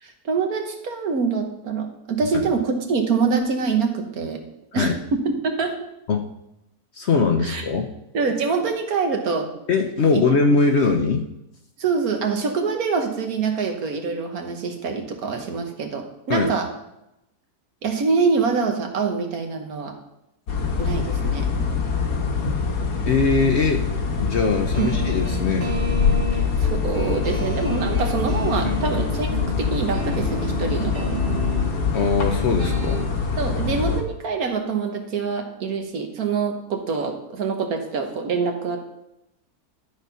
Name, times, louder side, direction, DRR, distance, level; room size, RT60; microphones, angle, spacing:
voice 1, 0.0-4.4 4.7-5.7 7.4-7.6 8.1-9.5 10.1-10.2 11.8-16.7 17.8-19.9 20.8-21.5 24.8-24.9 26.3-29.3 29.6-31.2 33.4-38.8, right 5 dB, 70° right, 4 dB, 1.6 m, -25 dB
voice 2, 6.9-7.9 9.7-11.3 16.3-16.5 23.1-23.8 24.2-25.7 28.6-28.7 31.9-33.1, left 4 dB, 55° left, 5 dB, 0.8 m, -21 dB
sound 1, 20.5-34.0, left 5 dB, 85° left, 1.7 m, -24 dB
sound 2, 24.7-33.1, right 1 dB, 40° right, 1.1 m, -32 dB
12.0 x 4.3 x 5.5 m, 0.86 s
omnidirectional pair, 1.7 m